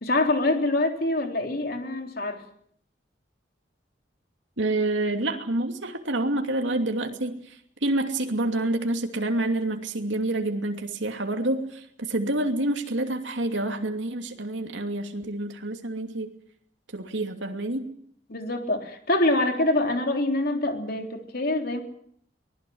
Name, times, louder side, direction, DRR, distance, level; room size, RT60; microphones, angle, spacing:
voice 1, 0.0-2.4 18.3-21.8, left 2 dB, 55° left, 4 dB, 3.6 m, -25 dB
voice 2, 4.6-16.3 16.9-17.9, right 2 dB, 90° right, 4 dB, 2.7 m, -28 dB
23.5 x 19.0 x 7.9 m, 0.65 s
head